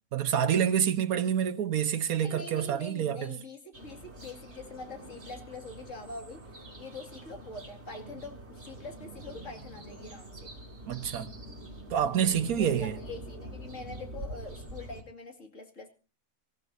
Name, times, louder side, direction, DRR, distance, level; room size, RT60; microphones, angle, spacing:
voice 1, 0.1-3.3 10.9-11.3 11.9-13.0, right 9 dB, 85° right, 1.5 m, -27 dB
voice 2, 2.2-10.5 12.2-15.9, left 3 dB, 60° left, 2.8 m, -44 dB
sound 1, 3.7-15.0, right 1 dB, 50° right, 3.3 m, -45 dB
24.5 x 15.0 x 2.7 m
omnidirectional pair, 1.5 m